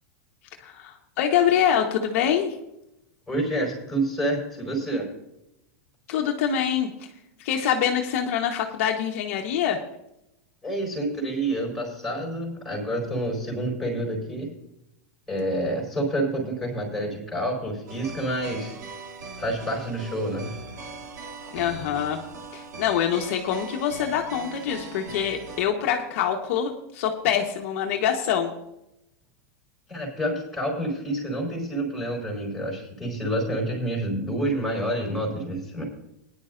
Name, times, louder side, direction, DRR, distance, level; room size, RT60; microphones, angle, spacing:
voice 1, 0.6-2.6 6.1-7.1 7.4-9.8 21.5-22.2 22.5-28.5, left 9 dB, 50° left, 3 dB, 1.2 m, -25 dB
voice 2, 3.3-5.1 10.6-14.5 15.3-18.8 19.4-20.5 29.9-35.8, right 1 dB, ahead, -2 dB, 4.4 m, -28 dB
sound 1, 17.9-25.7, right 4 dB, 90° right, 2.6 m, -40 dB
19.0 x 10.5 x 2.6 m, 0.85 s
supercardioid pair, 170°, 9 cm